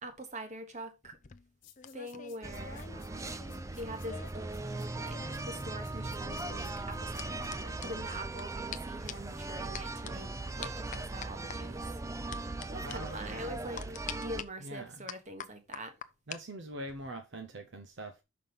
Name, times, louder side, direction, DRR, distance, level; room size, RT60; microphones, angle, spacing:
voice 1, 0.0-1.2 1.9-3.3 3.7-10.3 10.6-12.0 12.7-13.8 14.2-16.0, right 1 dB, 35° right, 1.4 m, -44 dB
sound 1, 1.0-4.5 4.7-8.4 8.7-8.8 9.1-9.3 9.7-10.1 10.6-11.6 12.3-12.7 12.9-13.0 13.8-14.4 15.1-16.4 16.7-17.1, left 7 dB, 40° left, 0.5 m, -46 dB
sound 2, 1.6-7.5, left 11 dB, 60° left, 1.5 m, -59 dB
sound 3, 2.4-14.4, right 2 dB, 15° right, 0.4 m, -39 dB
voice 2, 12.8-13.5 14.6-15.0 16.3-18.2, right 1 dB, 60° right, 0.7 m, -43 dB
5.9 x 5.7 x 5.2 m
head